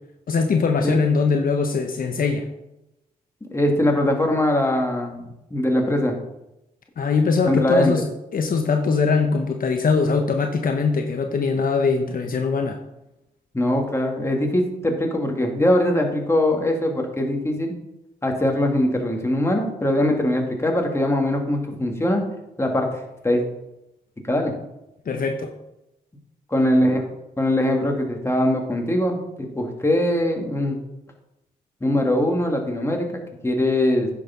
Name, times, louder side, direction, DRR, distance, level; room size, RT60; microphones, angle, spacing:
voice 1, 0.3-2.5 7.0-8.1 8.3-12.8 25.1-25.5, left 4 dB, 60° left, 4 dB, 1.1 m, -21 dB
voice 2, 3.5-5.2 5.5-6.2 7.5-8.0 13.5-17.7 18.2-22.2 22.6-23.4 24.2-24.5 26.5-27.1 27.4-30.8 31.8-34.1, left 1 dB, 15° left, 1 dB, 2.5 m, -21 dB
9.9 x 6.0 x 6.0 m, 0.91 s
cardioid pair, 65°, 16 cm